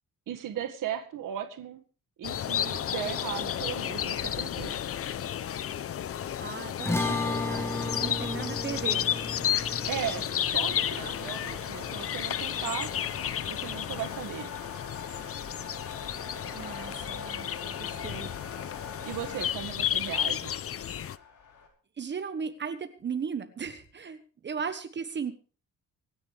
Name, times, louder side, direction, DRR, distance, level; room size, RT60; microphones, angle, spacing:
voice 1, 0.3-1.8 2.2-4.8 9.9-12.9 13.5-14.5 19.0-20.5, right 10 dB, 75° right, 7 dB, 1.9 m, -37 dB
sound 1, 2.2-21.2, left 10 dB, 45° left, 0.7 m, -32 dB
voice 2, 6.4-9.1 16.5-18.4 22.0-25.4, right 6 dB, 35° right, 9 dB, 1.2 m, -37 dB
sound 2, 6.8-21.7, left 5 dB, 65° left, 5.0 m, -44 dB
sound 3, 6.8-13.4, left 2 dB, 10° left, 1.3 m, -35 dB
25.0 x 10.0 x 3.4 m, 0.39 s
wide cardioid pair, 170°, 32 cm